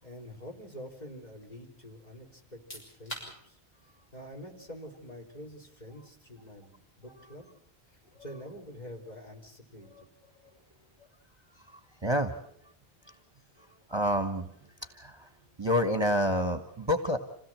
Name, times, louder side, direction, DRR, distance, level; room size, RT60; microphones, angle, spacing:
voice 1, 0.0-7.5 7.9-9.9, equal, 40° left, 0 dB, 4.2 m, -47 dB
sound 1, 2.5-15.1, equal, 65° left, 7.4 m, -54 dB
voice 2, 11.7-12.4 13.9-14.5 14.9-15.3 15.6-17.2, left 1 dB, 25° right, 7 dB, 1.5 m, -28 dB
27.0 x 17.0 x 7.5 m, 0.70 s
omnidirectional pair, 1.1 m